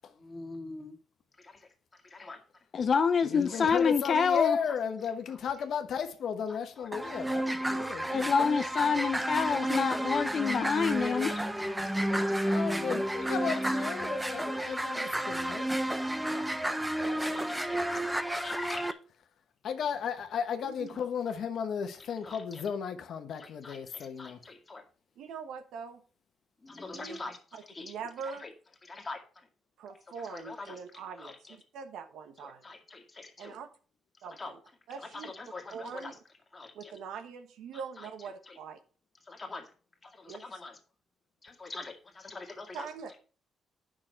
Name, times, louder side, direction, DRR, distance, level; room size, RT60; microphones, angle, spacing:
voice 1, 0.2-0.9 1.4-1.6 2.0-2.4 3.5-3.8 4.3-4.4 6.8-6.9 7.3-7.7 9.5-9.7 10.1-10.2 11.1-11.5 11.9-13.0 13.5-13.6 14.7-15.6 16.2-16.5 16.9-18.9 22.2-22.6 23.4-24.8 26.6-27.4 27.7-27.9 28.4-28.5 28.8-29.2 30.3-30.8 31.2-31.6 32.4-33.6 34.3-34.5 34.9-36.1 36.5-37.0 38.0-38.1 38.5-38.6 39.3-39.7 40.0-40.7 41.6-42.9, left 3 dB, 25° left, 2.1 m, -44 dB
voice 2, 2.7-4.6 8.1-11.3, left 6 dB, 50° left, 0.5 m, -26 dB
voice 3, 3.2-8.5 12.4-15.7 19.6-24.4, left 7 dB, 65° left, 1.2 m, -34 dB
sound 1, 6.9-18.9, right 1 dB, 10° right, 0.7 m, -31 dB
voice 4, 20.6-21.0 25.2-26.0 26.9-27.2 27.5-28.5 29.8-32.6 33.4-33.7 34.2-34.6 34.9-35.3 35.7-36.2 36.7-38.8 40.3-40.4 42.7-43.1, right 6 dB, 80° right, 1.2 m, -43 dB
8.8 x 6.3 x 4.3 m
cardioid pair, 90°, 0 cm